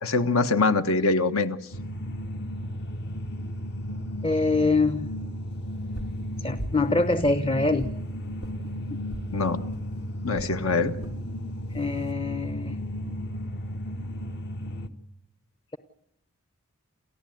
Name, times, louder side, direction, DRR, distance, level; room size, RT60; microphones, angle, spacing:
voice 1, 0.0-1.6 9.3-9.6 10.2-10.9, left 3 dB, 70° left, 9 dB, 1.6 m, -23 dB
sound 1, 1.7-14.9, equal, 50° left, 1.4 m, -34 dB
voice 2, 4.2-5.1 6.2-7.9 11.7-12.8, left 3 dB, 25° left, 12 dB, 0.8 m, -24 dB
sound 2, 5.9-6.2 6.6-6.9 7.2-8.0 8.4-8.6 9.1-9.3 9.7-9.9 10.3-10.5 11.0-11.2 11.8-12.1, right 1 dB, 90° left, 3.2 m, -39 dB
29.0 x 14.5 x 9.4 m, 0.79 s
head